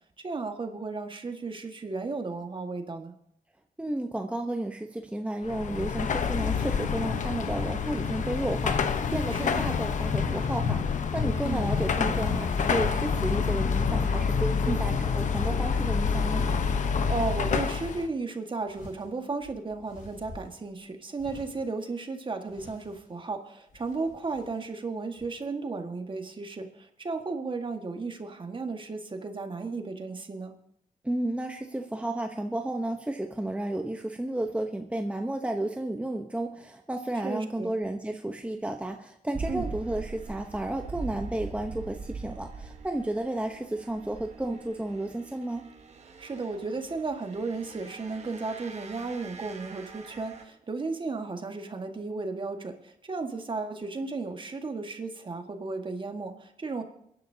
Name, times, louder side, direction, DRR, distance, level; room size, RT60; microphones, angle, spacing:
voice 1, 0.2-3.1 9.3-9.6 11.4-11.7 14.6-14.9 17.1-30.5 37.2-37.7 39.5-39.7 46.2-56.8, right 3 dB, 35° right, 5 dB, 1.7 m, -34 dB
voice 2, 3.8-16.5 31.0-45.7, right 1 dB, 10° right, 4 dB, 0.9 m, -32 dB
Car passing by / Traffic noise roadway noise / Engine, 5.4-18.1, left 5 dB, 60° left, 1.0 m, -27 dB
sound 1, 18.7-20.7 21.2-21.7 22.4-23.2 23.7-24.7 25.1-25.3, left 2 dB, 80° left, 6.0 m, -48 dB
sound 2, 39.3-50.4, right 4 dB, 50° right, 1.3 m, -42 dB
29.0 x 11.0 x 2.8 m, 0.76 s
cardioid pair, 85°, 14 cm